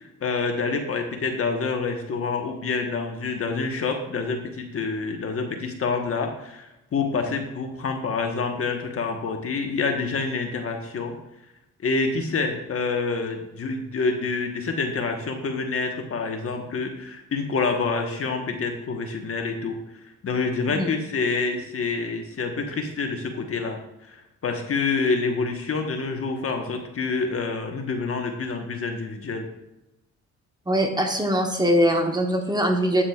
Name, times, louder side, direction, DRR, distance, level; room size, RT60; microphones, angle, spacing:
voice 1, 0.0-11.1 11.8-19.8 20.2-29.5, left 4 dB, 50° left, 4 dB, 1.3 m, -27 dB
voice 2, 30.7-33.0, equal, 15° right, 3 dB, 1.0 m, -22 dB
8.8 x 7.3 x 2.4 m, 0.92 s
cardioid pair, 90°, 30 cm